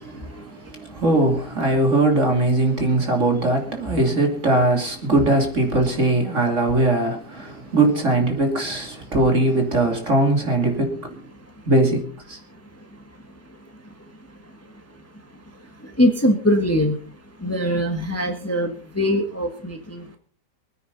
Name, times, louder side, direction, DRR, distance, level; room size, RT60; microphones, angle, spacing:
voice 1, 0.0-11.2 11.7-12.0 12.3-12.4, right 2 dB, 45° right, 3.3 m, -20 dB
voice 2, 16.0-16.9 17.4-20.2, equal, 10° left, 1.6 m, -22 dB
24.5 x 9.4 x 4.1 m
omnidirectional pair, 1.8 m